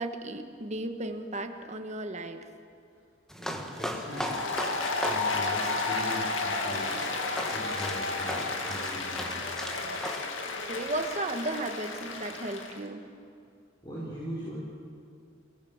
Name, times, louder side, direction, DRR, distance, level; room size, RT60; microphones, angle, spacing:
voice 1, 0.0-2.4 10.7-13.0, right 2 dB, 35° right, 6 dB, 1.6 m, -34 dB
sound 1, 3.3-10.2, equal, 5° left, 1.6 m, -38 dB
voice 2, 3.4-4.4 5.0-7.1 7.5-9.5 13.8-14.6, equal, 20° left, -7 dB, 5.5 m, -40 dB
Applause, 4.1-12.8, left 3 dB, 70° left, 2.4 m, -32 dB
29.5 x 18.5 x 7.4 m, 2.4 s
head